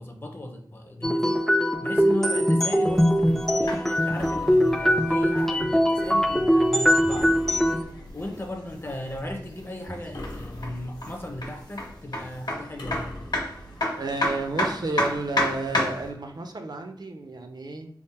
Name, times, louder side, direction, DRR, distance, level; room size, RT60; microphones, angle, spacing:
voice 1, 0.0-7.4 8.1-13.1, left 1 dB, 30° left, 3 dB, 0.7 m, -36 dB
sound 1, 1.0-7.8, equal, 5° left, 0.3 m, -22 dB
sound 2, 2.8-16.1, left 1 dB, 60° left, 1.2 m, -33 dB
sound 3, 4.2-5.2 7.1-8.2 10.1-11.3 12.8-13.9, left 1 dB, 75° left, 1.4 m, -41 dB
voice 2, 14.0-17.9, right 3 dB, 60° right, 5 dB, 0.5 m, -31 dB
3.5 x 2.0 x 4.2 m, 0.67 s
wide cardioid pair, 75°, 8 cm